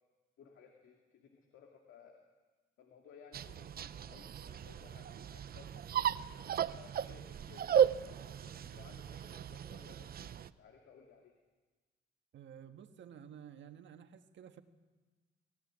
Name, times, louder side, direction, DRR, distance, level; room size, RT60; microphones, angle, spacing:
voice 1, 0.4-2.2 2.8-6.1 6.4-11.4, left 6 dB, 75° left, 2 dB, 2.4 m, -59 dB
sound 1, 3.3-10.5, right 9 dB, 50° right, 0.7 m, -35 dB
voice 2, 12.3-14.6, right 8 dB, 65° right, 7 dB, 1.6 m, -52 dB
21.0 x 16.5 x 9.9 m, 1.3 s
cardioid pair, 90°, 20 cm